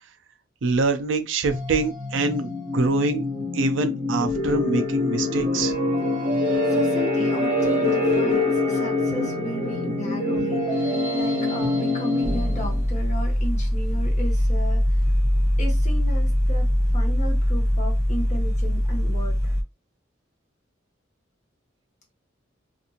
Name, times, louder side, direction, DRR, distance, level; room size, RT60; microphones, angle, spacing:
voice 1, 0.6-3.2 3.5-5.7, right 3 dB, 85° right, 0.5 m, -24 dB
sound 1, 1.5-12.9, left 2 dB, 40° right, 1.1 m, -25 dB
voice 2, 6.7-15.0 15.6-19.5, equal, 40° left, 1.2 m, -35 dB
sound 2, 12.2-19.6, equal, 15° right, 0.7 m, -22 dB
2.6 x 2.5 x 2.8 m
head